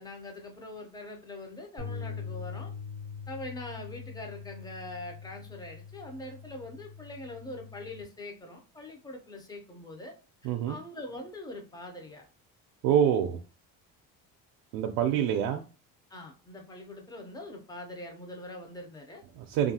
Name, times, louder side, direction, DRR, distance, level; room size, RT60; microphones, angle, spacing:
voice 1, 0.0-2.7 3.3-10.1 10.4-12.2 15.1-15.4 16.1-19.2, left 1 dB, 10° left, 2 dB, 0.5 m, -43 dB
sound 1, 1.8-8.0, left 6 dB, 60° left, 1.2 m, -42 dB
voice 2, 10.4-10.8 12.8-13.4 14.7-15.6 19.4-19.7, right 9 dB, 75° right, 4 dB, 0.5 m, -26 dB
2.7 x 2.4 x 2.7 m, 0.34 s
cardioid pair, 145°, 38 cm